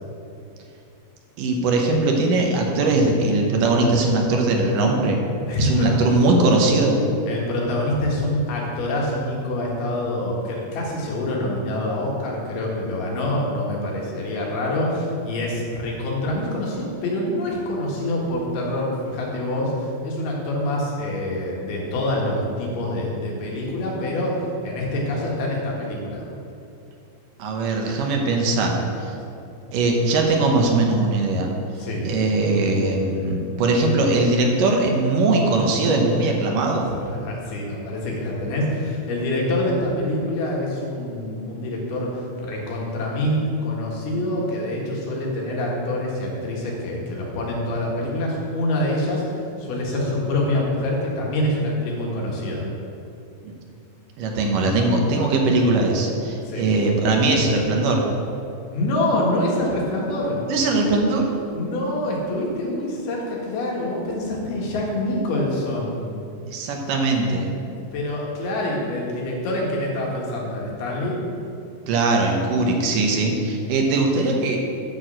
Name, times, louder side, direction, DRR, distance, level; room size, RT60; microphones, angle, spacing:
voice 1, 1.4-5.2 5.6-7.0 27.4-29.1 29.7-31.5 32.0-36.9 53.4-53.5 54.2-58.1 60.5-61.3 66.5-67.5 71.9-74.6, right 2 dB, 70° right, 1 dB, 2.6 m, -20 dB
voice 2, 5.5-5.9 7.3-26.2 31.8-32.1 37.0-52.6 56.5-56.7 58.7-60.4 61.5-66.0 67.9-71.2, left 1 dB, 85° left, -3 dB, 3.8 m, -26 dB
9.2 x 6.3 x 7.6 m, 2.6 s
omnidirectional pair, 4.3 m